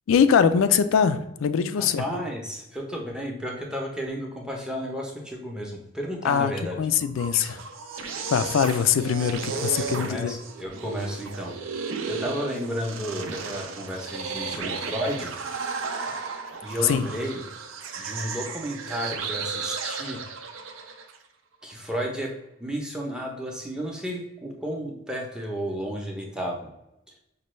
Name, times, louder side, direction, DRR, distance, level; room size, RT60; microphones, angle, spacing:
voice 1, 0.1-2.2 6.2-6.5 6.8-7.6 8.0-10.3 16.8-17.1, left 7 dB, 70° left, 12 dB, 0.3 m, -22 dB
voice 2, 1.8-6.8 9.5-11.5 12.1-15.3 16.6-17.4 18.0-20.2 21.6-22.3 22.6-26.6 27.1-27.2, equal, 5° right, -1 dB, 0.6 m, -32 dB
sound 1, 7.0-21.2, right 5 dB, 70° right, 0.5 m, -34 dB
5.2 x 2.2 x 3.1 m, 0.89 s
head